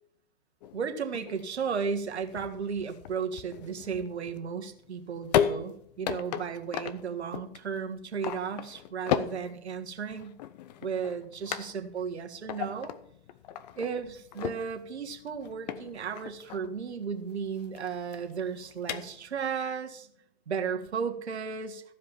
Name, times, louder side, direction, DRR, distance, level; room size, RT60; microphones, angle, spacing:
sound 1, 0.6-19.5, left 10 dB, 40° left, 0.7 m, -36 dB
voice 1, 0.7-10.4 10.8-12.9 13.8-20.1 20.5-21.8, right 6 dB, 85° right, 5 dB, 1.7 m, -34 dB
14.5 x 5.2 x 7.1 m, 0.67 s
hypercardioid pair, 140°, 32 cm